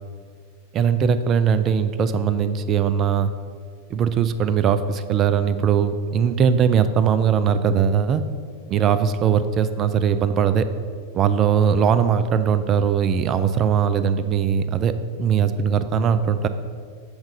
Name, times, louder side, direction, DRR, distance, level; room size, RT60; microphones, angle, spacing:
voice 1, 0.7-3.3 3.9-8.2 8.7-10.7 11.1-14.9 15.2-16.5, right 7 dB, 30° right, 12 dB, 0.4 m, -20 dB
7.2 x 3.7 x 5.2 m, 2.1 s
figure-of-eight pair, 90°, 0 cm